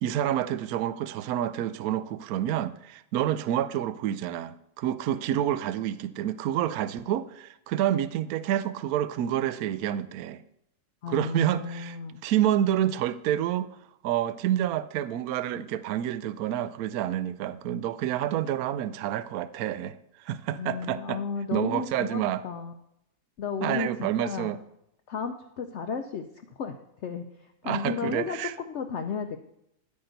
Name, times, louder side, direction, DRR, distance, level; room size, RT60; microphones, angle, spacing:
voice 1, 0.0-10.4 11.1-12.0 12.2-13.8 14.0-20.0 20.3-21.2 21.5-22.4 23.6-24.6 27.6-28.5, right 11 dB, 75° right, 1.0 m, -28 dB
voice 2, 11.0-12.2 20.6-22.7 23.4-24.5 25.1-26.2 26.6-26.7 27.0-28.4 28.7-29.4, left 5 dB, 60° left, 0.8 m, -33 dB
10.5 x 8.6 x 4.0 m
omnidirectional pair, 1.7 m